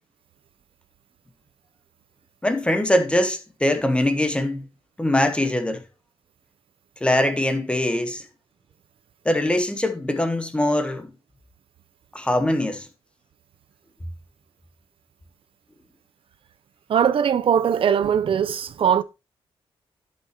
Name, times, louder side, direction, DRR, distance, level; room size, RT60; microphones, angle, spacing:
voice 1, 2.4-4.7 5.0-5.8 7.0-8.2 9.2-11.1 12.1-12.9, left 1 dB, 10° left, 1.1 m, -22 dB
voice 2, 16.9-19.0, right 8 dB, 65° right, 0.6 m, -20 dB
11.5 x 5.9 x 2.9 m
wide cardioid pair, 120°, 10 cm